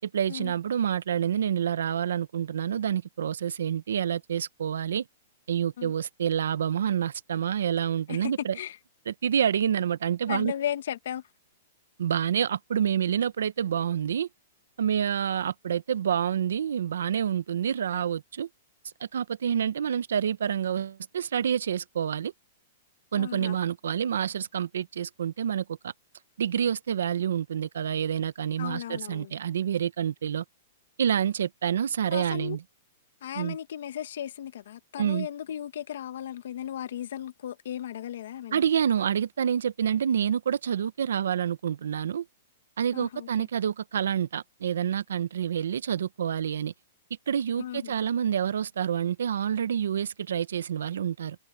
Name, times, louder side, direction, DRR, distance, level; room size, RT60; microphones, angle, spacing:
voice 1, 0.0-5.0 5.5-8.6 9.1-10.5 12.0-14.3 14.8-18.5 19.0-22.3 23.1-25.9 26.4-30.4 31.0-32.6 33.3-33.6 35.0-35.3 38.5-42.2 42.8-46.7 47.3-51.4, right 8 dB, 85° right, 0.9 m, -28 dB
voice 2, 8.1-8.8 10.3-11.2 23.2-23.6 28.6-29.3 32.1-32.6 33.2-38.6 42.9-43.5 47.6-47.9, left 10 dB, 70° left, 1.5 m, -35 dB
hypercardioid pair, 155°, 0 cm